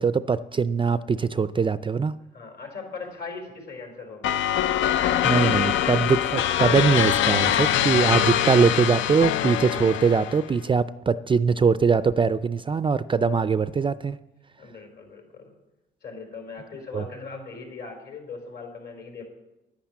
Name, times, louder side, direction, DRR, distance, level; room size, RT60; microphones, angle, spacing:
voice 1, 0.0-2.1 5.2-14.2 16.9-17.0, right 5 dB, 25° right, 14 dB, 0.4 m, -22 dB
voice 2, 2.3-4.4 14.6-15.5 16.0-19.3, left 4 dB, 55° left, 3 dB, 4.4 m, -39 dB
sound 1, 4.2-10.5, left 10 dB, 75° left, 0.5 m, -23 dB
10.5 x 10.0 x 7.4 m, 0.96 s
cardioid pair, 90°, 20 cm